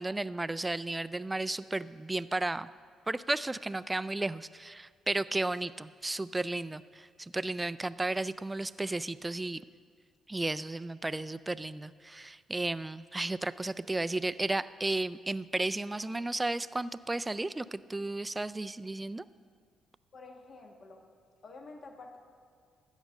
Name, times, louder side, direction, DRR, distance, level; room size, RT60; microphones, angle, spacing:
voice 1, 0.0-2.7 3.1-9.6 10.3-19.2, right 2 dB, 15° right, 16 dB, 0.3 m, -33 dB
voice 2, 20.1-21.1 21.4-22.2, left 3 dB, 45° left, 4 dB, 1.3 m, -49 dB
13.5 x 8.2 x 6.4 m, 2.1 s
cardioid pair, 90°, 0 cm